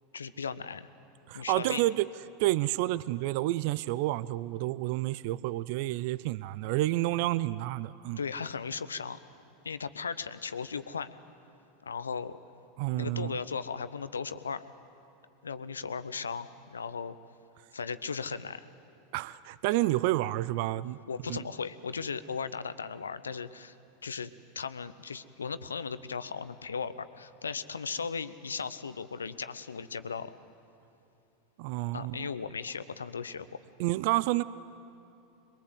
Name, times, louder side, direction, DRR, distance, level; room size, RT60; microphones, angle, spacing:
voice 1, 0.1-0.9 1.3-1.8 8.2-9.2 9.6-11.1 11.8-12.4 12.9-14.6 15.4-17.2 17.7-18.7 21.1-23.8 24.0-24.3 24.5-30.3 31.9-33.6, left 5 dB, 85° left, 13 dB, 0.7 m, -37 dB
voice 2, 1.3-2.1 2.4-8.2 12.8-13.4 19.1-21.0 21.3-21.4 31.6-32.3 33.8-34.4, right 17 dB, 60° right, 18 dB, 0.4 m, -29 dB
22.5 x 22.5 x 8.0 m, 2.7 s
hypercardioid pair, 90°, 0 cm